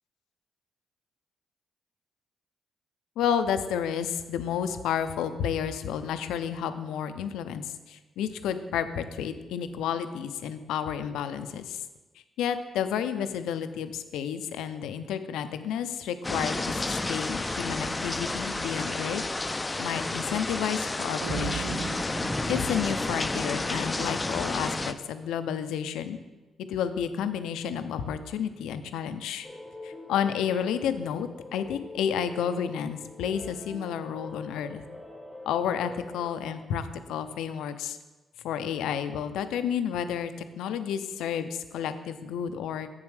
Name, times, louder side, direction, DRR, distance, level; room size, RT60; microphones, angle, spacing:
voice 1, 3.2-11.8 12.4-19.2 19.8-21.9 22.5-26.2 26.7-29.5 29.8-34.8 35.5-38.0 38.4-42.9, left 8 dB, 90° left, 10 dB, 0.4 m, -31 dB
sound 1, 16.2-24.9, left 2 dB, 25° left, 0.4 m, -31 dB
sound 2, 21.2-24.3, right 7 dB, 75° right, 0.4 m, -38 dB
sound 3, 29.4-36.3, left 2 dB, ahead, 1.1 m, -44 dB
8.1 x 7.0 x 3.3 m, 1.2 s
supercardioid pair, 60°, 0 cm